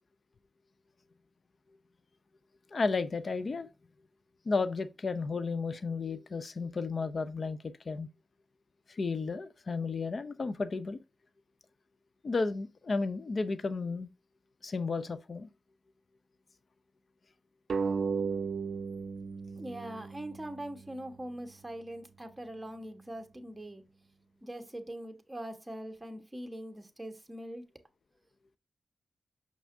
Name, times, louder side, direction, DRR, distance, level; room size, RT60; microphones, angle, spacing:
voice 1, 2.7-3.7 4.5-8.1 8.9-11.0 12.2-14.1 14.6-15.5, left 4 dB, 50° left, 0.5 m, -33 dB
sound 1, 17.7-20.9, right 5 dB, 65° right, 0.4 m, -35 dB
voice 2, 19.5-23.8 24.4-27.6, right 1 dB, 15° right, 1.3 m, -42 dB
6.1 x 5.8 x 2.6 m
cardioid pair, 70°, 0 cm